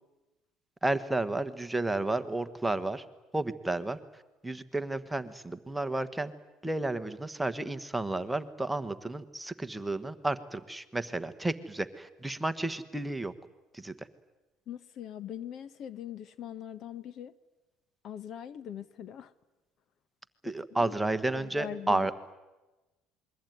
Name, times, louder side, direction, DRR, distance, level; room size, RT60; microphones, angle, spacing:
voice 1, 0.8-3.0 3.3-4.0 4.4-6.3 6.6-13.3 13.7-14.1 20.4-22.1, right 2 dB, 5° right, 10 dB, 1.3 m, -32 dB
voice 2, 14.7-17.3 18.0-19.3 20.6-20.9 21.3-22.1, left 10 dB, 50° left, 16 dB, 1.1 m, -41 dB
27.5 x 22.5 x 9.4 m, 1.1 s
cardioid pair, 130°, 0 cm